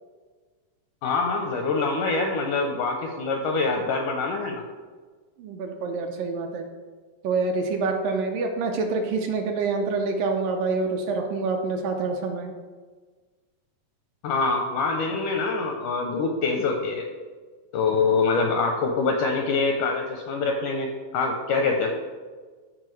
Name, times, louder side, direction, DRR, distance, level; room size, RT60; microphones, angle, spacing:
voice 1, 1.0-4.6 14.2-17.1 17.7-21.9, left 4 dB, 85° left, 3 dB, 1.8 m, -25 dB
voice 2, 5.4-6.7 7.2-12.5, right 4 dB, 80° right, 3 dB, 2.1 m, -26 dB
14.0 x 4.8 x 3.1 m, 1.4 s
omnidirectional pair, 4.3 m